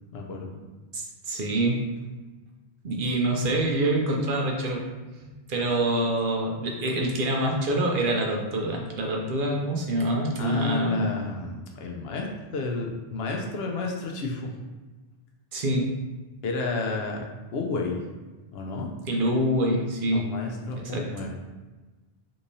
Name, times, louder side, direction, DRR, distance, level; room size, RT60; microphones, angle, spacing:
voice 1, 0.1-0.6 10.4-12.3 12.5-14.5 16.4-17.2 17.5-18.0 18.5-18.9 20.1-21.3, left 3 dB, 75° left, 1 dB, 0.8 m, -31 dB
voice 2, 0.9-1.8 2.8-4.8 5.2-11.1 15.5-15.9 19.1-20.3 20.8-21.0, right 1 dB, 60° right, 0 dB, 0.7 m, -26 dB
3.6 x 3.0 x 2.6 m, 1.2 s
omnidirectional pair, 1.1 m